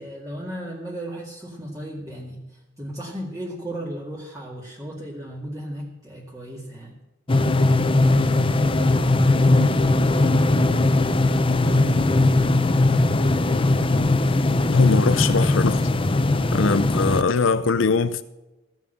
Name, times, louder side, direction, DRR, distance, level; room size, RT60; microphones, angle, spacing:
voice 1, 0.0-7.0, right 1 dB, 20° right, 2.1 m, -35 dB
sound 1, 7.3-17.2, left 2 dB, 30° left, 0.7 m, -19 dB
voice 2, 14.7-15.8 16.5-18.2, left 4 dB, 85° left, 0.6 m, -21 dB
16.0 x 7.2 x 7.8 m
head